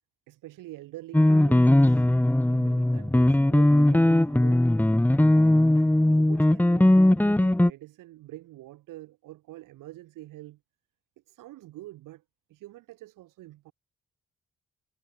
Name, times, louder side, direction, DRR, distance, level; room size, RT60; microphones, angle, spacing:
voice 1, 0.3-2.1 2.5-4.7 5.3-10.6 11.3-12.2 12.5-13.7, right 16 dB, 85° right, 4.0 m, -45 dB
sound 1, 1.1-7.7, left 1 dB, 5° left, 0.7 m, -20 dB
supercardioid pair, 45°, 31 cm